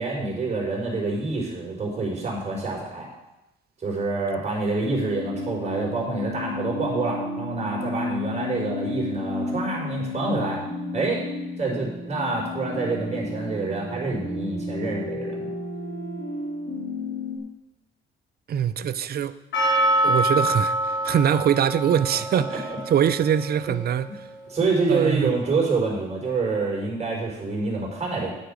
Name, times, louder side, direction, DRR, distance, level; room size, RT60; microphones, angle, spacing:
voice 1, 0.0-3.1 3.8-10.6 10.9-11.2 11.6-15.5 24.5-28.3, right 3 dB, 35° right, 4.7 m, -27 dB
sound 1, 4.8-17.4, left 2 dB, 85° left, 2.4 m, -32 dB
voice 2, 18.5-19.4 20.0-24.3 24.9-25.3, right 9 dB, 50° right, 0.6 m, -23 dB
Percussion, 19.5-24.5, right 1 dB, 65° left, 4.2 m, -26 dB
9.5 x 9.4 x 5.2 m
cardioid pair, 90°, 20 cm